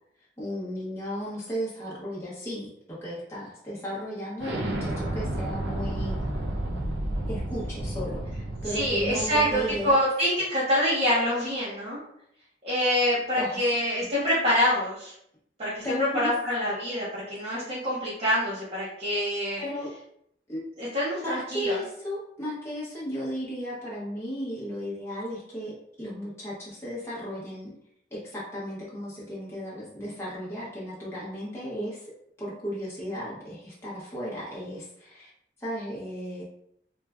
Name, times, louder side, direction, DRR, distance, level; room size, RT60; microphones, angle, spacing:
voice 1, 0.4-6.2 7.3-8.2 8.6-10.0 13.4-13.6 14.0-14.1 15.8-16.3 19.6-19.9 20.5-20.6 21.2-27.7 28.1-32.1 32.4-35.3 35.6-36.4, equal, 15° left, -8 dB, 0.7 m, -35 dB
Explosion, 4.4-9.9, right 1 dB, 75° right, 0.5 m, -32 dB
voice 2, 8.6-12.0 12.6-15.1 15.6-15.8 16.1-19.6 20.8-21.8, equal, 35° right, -9 dB, 0.7 m, -26 dB
3.1 x 2.3 x 2.2 m, 0.72 s
head